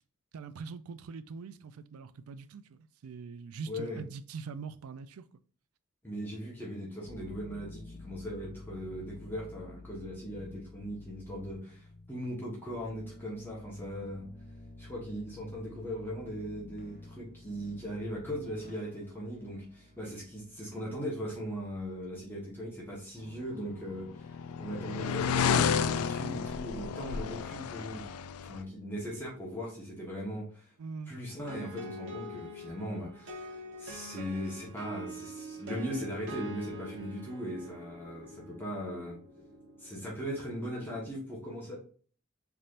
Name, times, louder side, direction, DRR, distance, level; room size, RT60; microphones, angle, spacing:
voice 1, 0.3-5.3 30.8-31.2, right 5 dB, 85° right, 0.4 m, -43 dB
voice 2, 3.7-4.0 6.0-14.3 14.8-28.1 28.4-30.7 31.1-39.2 39.8-41.8, equal, 10° left, 1.2 m, -39 dB
sound 1, 7.0-24.4, left 2 dB, 45° left, 1.0 m, -51 dB
sound 2, 23.7-28.6, left 7 dB, 85° left, 0.3 m, -31 dB
sound 3, 31.5-41.1, equal, 60° right, 1.2 m, -45 dB
4.2 x 3.4 x 2.5 m
head